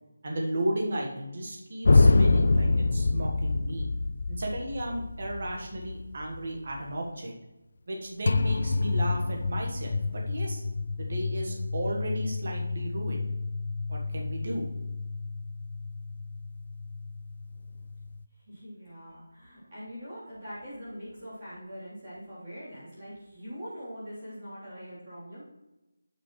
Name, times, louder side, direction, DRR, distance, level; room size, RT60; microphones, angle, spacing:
voice 1, 0.2-3.9 4.3-7.3 7.9-10.6 11.0-13.3 13.9-14.7, right 1 dB, 35° right, 0 dB, 1.4 m, -34 dB
sound 1, 1.8-7.0 8.3-18.2, left 3 dB, 40° left, 0.3 m, -27 dB
voice 2, 18.3-25.5, equal, 20° right, -12 dB, 3.6 m, -43 dB
9.4 x 8.5 x 3.2 m, 0.99 s
figure-of-eight pair, 180°, 0 cm